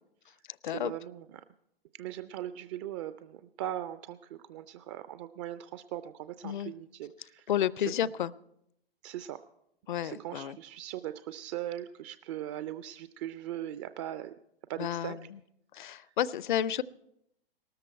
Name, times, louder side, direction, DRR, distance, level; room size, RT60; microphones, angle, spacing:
voice 1, 0.6-1.4 1.9-7.5 7.8-7.9 9.0-9.4 10.0-14.3 14.7-15.3 15.8-16.1, right 12 dB, 30° right, 12 dB, 0.5 m, -40 dB
voice 2, 7.5-8.3 9.9-10.6 14.8-15.2 15.7-16.8, left 10 dB, 55° left, 21 dB, 0.6 m, -31 dB
18.5 x 13.5 x 4.5 m, 0.78 s
figure-of-eight pair, 105°, 29 cm